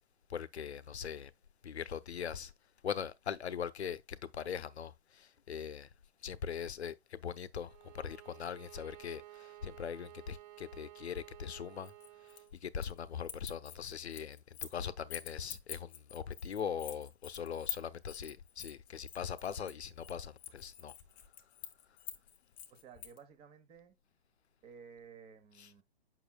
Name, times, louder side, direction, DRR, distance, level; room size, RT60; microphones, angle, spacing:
voice 1, 0.3-1.3 1.6-2.5 2.8-5.9 6.2-11.9 12.6-20.9, left 7 dB, 85° left, 0.7 m, -41 dB
Bowed string instrument, 7.6-12.6, right 15 dB, 50° right, 0.6 m, -54 dB
sound 1, 11.8-13.0 13.2-14.8 15.1-23.2, left 10 dB, 15° left, 0.6 m, -46 dB
voice 2, 22.7-24.0 24.6-25.8, right 6 dB, 15° right, 0.9 m, -55 dB
7.1 x 5.9 x 2.2 m
hypercardioid pair, 140°, 32 cm